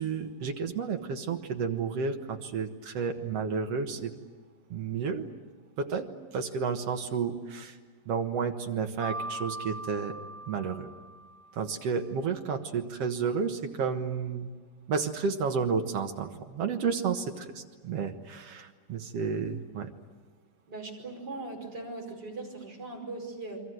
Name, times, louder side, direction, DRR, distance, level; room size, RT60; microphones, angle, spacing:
voice 1, 0.0-4.1 4.7-5.3 5.8-7.8 8.1-10.1 10.5-10.9 11.5-14.5 14.9-19.9, right 5 dB, 55° right, 5 dB, 2.2 m, -31 dB
Mallet percussion, 9.0-11.8, right 2 dB, 75° right, 4.5 m, -40 dB
voice 2, 20.7-23.6, right 2 dB, 30° right, 1 dB, 5.6 m, -39 dB
29.5 x 23.5 x 7.9 m, 1.4 s
omnidirectional pair, 3.8 m